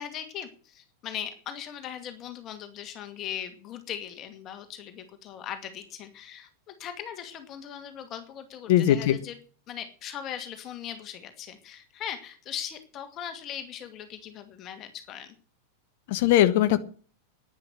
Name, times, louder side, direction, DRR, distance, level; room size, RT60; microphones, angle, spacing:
voice 1, 0.0-9.4 9.7-15.4, left 9 dB, 35° left, 7 dB, 2.3 m, -39 dB
voice 2, 8.7-9.2 16.1-16.8, left 12 dB, 50° left, 11 dB, 1.1 m, -20 dB
11.0 x 10.5 x 7.9 m, 0.41 s
figure-of-eight pair, 90°, 0 cm